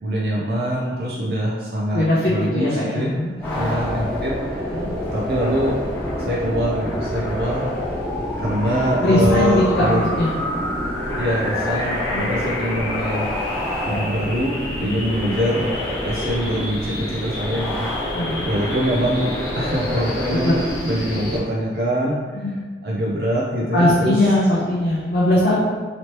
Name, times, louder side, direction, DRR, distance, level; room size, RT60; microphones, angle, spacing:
voice 1, 0.0-2.0 2.3-3.1 3.6-4.8 5.1-5.8 6.2-7.7 8.4-10.0 11.1-13.3 13.9-15.7 16.0-17.9 18.5-22.5 22.8-24.2, equal, 60° right, -5 dB, 0.5 m, -24 dB
voice 2, 1.9-3.6 4.7-4.9 9.0-10.3 12.0-12.3 14.8-15.0 18.1-18.4 20.4-20.5 22.3-22.6 23.7-25.6, left 1 dB, 55° left, -7 dB, 0.6 m, -20 dB
sound 1, 3.4-21.4, left 1 dB, 10° left, 1.0 m, -26 dB
3.1 x 2.9 x 2.9 m, 1.5 s
head